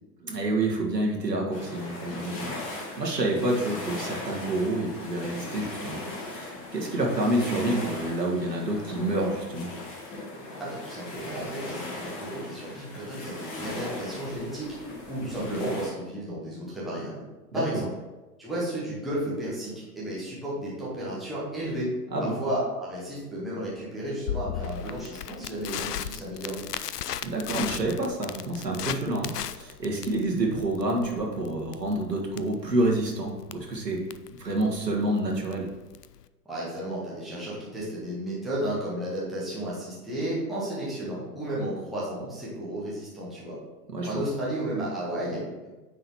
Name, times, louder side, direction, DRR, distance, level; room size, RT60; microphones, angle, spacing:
voice 1, 0.2-9.7 17.5-17.7 22.1-22.4 27.2-34.1 34.4-35.7 43.9-44.2, right 1 dB, 80° right, -1 dB, 1.8 m, -28 dB
sound 1, 1.5-15.9, left 2 dB, 35° left, 1.8 m, -38 dB
voice 2, 10.6-14.7 15.1-17.2 17.5-17.9 18.4-21.9 22.4-26.7 36.5-43.6 44.0-45.7, right 1 dB, ahead, -10 dB, 0.3 m, -33 dB
Crackle, 24.3-36.2, left 10 dB, 75° left, 0.5 m, -37 dB
9.1 x 3.9 x 4.5 m, 1.2 s
figure-of-eight pair, 100°, 48 cm